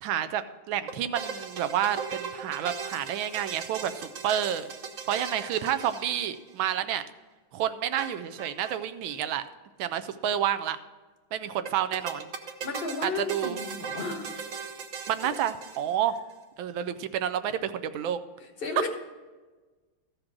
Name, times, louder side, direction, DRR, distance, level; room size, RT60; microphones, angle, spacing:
voice 1, 0.0-4.7 5.1-7.0 7.5-9.4 9.8-10.8 11.3-12.3 13.0-13.6 15.1-16.2 16.6-18.2, right 10 dB, 80° right, 11 dB, 1.3 m, -29 dB
sound 1, 0.9-6.7 8.0-8.8 9.1-9.2 9.3-9.4 11.7-16.2, right 6 dB, 55° right, 0.9 m, -38 dB
voice 2, 12.6-14.3 15.2-15.3 18.4-18.9, left 3 dB, 35° left, 4 dB, 1.0 m, -34 dB
14.0 x 5.1 x 6.0 m, 1.3 s
omnidirectional pair, 2.2 m